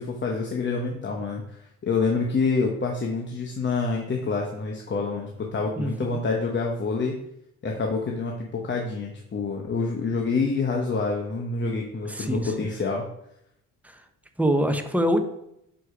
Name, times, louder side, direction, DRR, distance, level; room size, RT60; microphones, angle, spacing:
voice 1, 0.0-7.2 7.6-13.1, left 4 dB, 35° left, 0 dB, 1.1 m, -27 dB
voice 2, 5.8-6.2 12.1-12.5 14.4-15.2, equal, 5° right, 6 dB, 1.0 m, -24 dB
6.2 x 5.1 x 5.0 m, 0.77 s
supercardioid pair, 75°, 32 cm